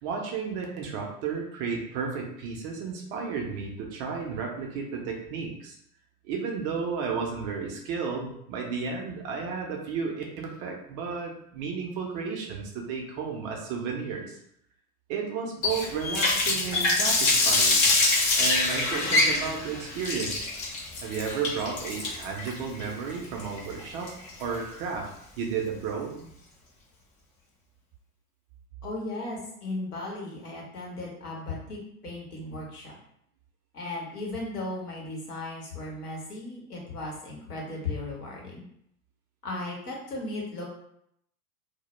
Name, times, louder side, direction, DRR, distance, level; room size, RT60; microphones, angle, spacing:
voice 1, 0.0-5.8 6.2-14.4 15.1-17.9 18.3-20.6 21.0-24.1 24.4-25.1 25.4-26.3, right 5 dB, 30° right, 1 dB, 0.4 m, -33 dB
Water tap faucet, 15.6-24.5, left 2 dB, 35° left, 0.8 m, -25 dB
voice 2, 28.8-31.8 32.0-32.9 33.7-38.6 39.4-40.6, left 2 dB, 80° left, -2 dB, 0.9 m, -36 dB
2.1 x 2.0 x 2.9 m, 0.73 s
figure-of-eight pair, 85°, 46 cm